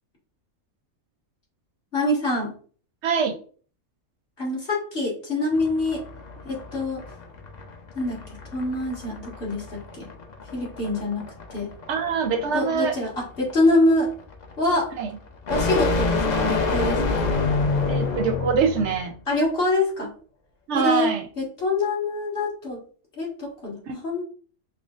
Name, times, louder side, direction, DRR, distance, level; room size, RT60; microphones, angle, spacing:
voice 1, 1.9-2.5 4.4-6.0 6.4-7.0 8.0-8.2 8.5-10.1 10.5-11.7 12.5-14.1 14.6-14.9 15.5-17.2 19.3-20.1 20.7-22.8 23.2-23.8 24.0-24.2, left 2 dB, 40° left, -4 dB, 1.9 m, -25 dB
voice 2, 3.0-3.3 11.9-12.9 15.0-15.1 17.9-19.1 20.7-21.3 23.9-24.0, right 6 dB, 65° right, 6 dB, 0.8 m, -24 dB
sound 1, 5.5-19.0, left 3 dB, 75° left, 0.4 m, -28 dB
5.8 x 2.2 x 2.4 m, 0.41 s
omnidirectional pair, 1.5 m